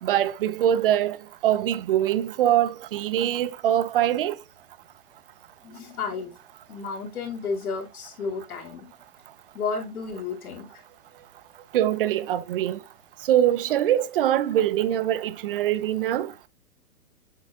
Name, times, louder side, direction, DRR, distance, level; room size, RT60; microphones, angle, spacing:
voice 1, 0.0-1.2 1.4-4.4 11.7-12.8 13.3-16.3, right 11 dB, 35° right, 0.6 m, -23 dB
voice 2, 5.6-6.4 6.7-8.9 9.5-10.8, left 5 dB, 65° left, 2.7 m, -32 dB
8.0 x 7.0 x 2.4 m
hypercardioid pair, 145°, 46 cm